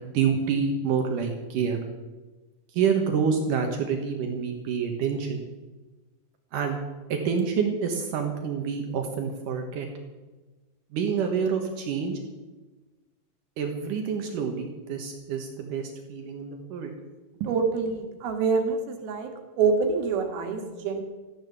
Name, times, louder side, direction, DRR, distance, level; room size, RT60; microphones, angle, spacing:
voice 1, 0.0-1.8 2.7-5.4 6.5-6.8 7.1-9.9 10.9-12.2 13.6-16.9 17.4-17.5, right 6 dB, 70° right, 4 dB, 2.6 m, -27 dB
voice 2, 17.5-19.3 19.6-21.0, right 5 dB, 90° right, 5 dB, 3.5 m, -26 dB
14.0 x 10.5 x 7.1 m, 1.2 s
omnidirectional pair, 4.2 m